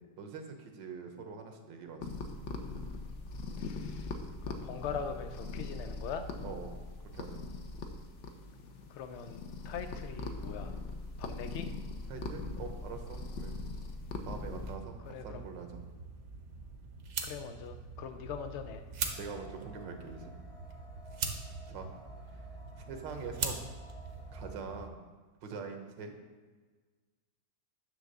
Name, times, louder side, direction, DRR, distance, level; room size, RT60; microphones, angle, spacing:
voice 1, 0.0-2.0 6.4-6.7 7.1-7.4 12.0-13.6 14.2-15.8 19.2-20.3 21.7-21.9 22.3-22.4 22.7-23.6 24.3-25.0 25.4-26.1, right 5 dB, 80° right, 5 dB, 1.6 m, -44 dB
sound 1, 2.0-14.7, left 3 dB, 55° left, 0.9 m, -41 dB
voice 2, 3.6-4.2 4.5-6.3 8.9-10.8 11.2-11.7 15.1-15.5 17.2-18.8, left 7 dB, 85° left, 8 dB, 0.6 m, -41 dB
sound 2, 14.5-24.9, right 5 dB, 50° right, 0.9 m, -42 dB
sound 3, 19.1-24.6, equal, 25° left, 0.9 m, -53 dB
9.4 x 3.5 x 6.5 m, 1.4 s
omnidirectional pair, 1.9 m